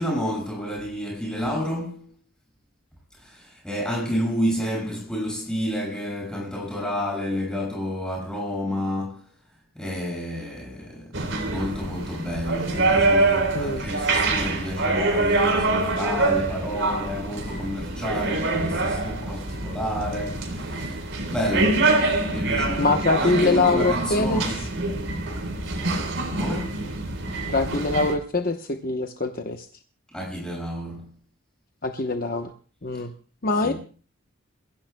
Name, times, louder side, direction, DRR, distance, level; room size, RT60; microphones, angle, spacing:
voice 1, 0.0-2.2 3.2-9.3 9.7-21.9 22.2-24.7 26.3-26.9 30.1-31.1 33.6-33.7, equal, 5° left, 6.3 m, -30 dB
sound 1, 11.1-28.1, right 2 dB, 70° right, 3.8 m, -25 dB
voice 2, 22.8-24.4 27.5-29.7 31.8-32.5 32.8-33.1 33.4-33.7, left 3 dB, 45° left, 1.0 m, -23 dB
28.0 x 16.0 x 2.2 m
head